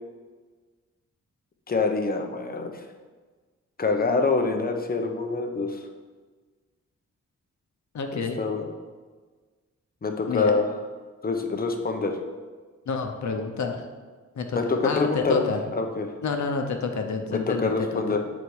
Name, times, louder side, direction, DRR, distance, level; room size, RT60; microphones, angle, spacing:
voice 1, 1.7-2.8 3.8-5.8 8.1-8.7 10.0-10.7 11.2-12.2 14.5-16.1 17.3-18.2, left 4 dB, 30° left, 4 dB, 0.7 m, -25 dB
voice 2, 7.9-8.4 10.3-10.5 12.9-13.8 14.3-15.6 16.2-18.0, left 4 dB, 70° left, 4 dB, 0.9 m, -29 dB
8.5 x 4.1 x 4.7 m, 1.4 s
wide cardioid pair, 145°, 29 cm